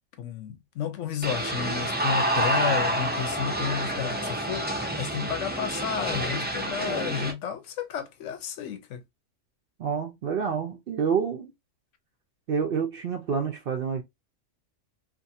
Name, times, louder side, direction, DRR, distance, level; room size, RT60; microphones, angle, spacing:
voice 1, 0.2-9.0, left 8 dB, 75° left, 0.9 m, -32 dB
sound 1, 1.2-7.3, right 1 dB, 15° right, 0.3 m, -28 dB
voice 2, 9.8-11.5 12.5-14.0, right 6 dB, 60° right, 0.6 m, -28 dB
2.5 x 2.5 x 2.6 m
omnidirectional pair, 1.3 m